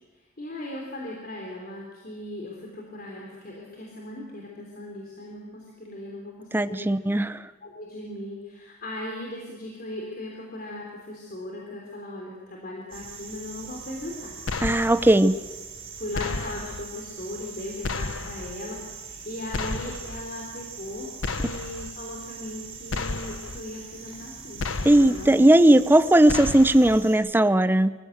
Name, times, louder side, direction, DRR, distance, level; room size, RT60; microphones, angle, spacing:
voice 1, 0.4-7.0 7.6-14.4 15.2-15.3 16.0-21.1 21.4-24.6 24.9-25.4 25.7-25.8, left 1 dB, 50° left, -1 dB, 3.5 m, -38 dB
voice 2, 6.5-7.4 14.6-15.3 24.8-27.9, right 1 dB, 10° right, 14 dB, 0.6 m, -18 dB
sound 1, 12.9-27.2, right 5 dB, 30° right, 4.8 m, -42 dB
sound 2, 14.5-15.1 16.1-16.8 17.8-18.5 19.5-20.2 21.2-21.9 22.9-23.6 24.6-25.3 26.3-27.0, left 3 dB, 80° left, 0.9 m, -32 dB
24.0 x 16.0 x 8.0 m, 1.3 s
head